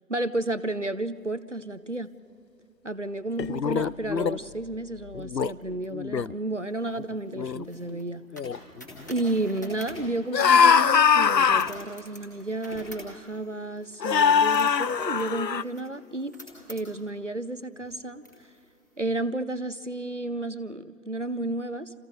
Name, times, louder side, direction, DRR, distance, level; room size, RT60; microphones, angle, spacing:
voice 1, 0.1-2.1 2.8-8.2 9.1-16.4 16.7-18.2 19.0-21.9, right 2 dB, 50° right, 14 dB, 0.7 m, -32 dB
sound 1, 3.4-4.4 5.1-5.5 5.9-6.3 7.0-7.1 7.4-7.6 8.3-8.6 10.3-11.7 12.7-12.8 14.0-15.6, left 6 dB, 85° left, 0.7 m, -22 dB
sound 2, 6.6-10.9 11.3-17.1 17.7-17.8 18.2-18.9, equal, 10° left, 1.9 m, -47 dB
30.0 x 27.5 x 3.9 m, 2.7 s
figure-of-eight pair, 165°, 49 cm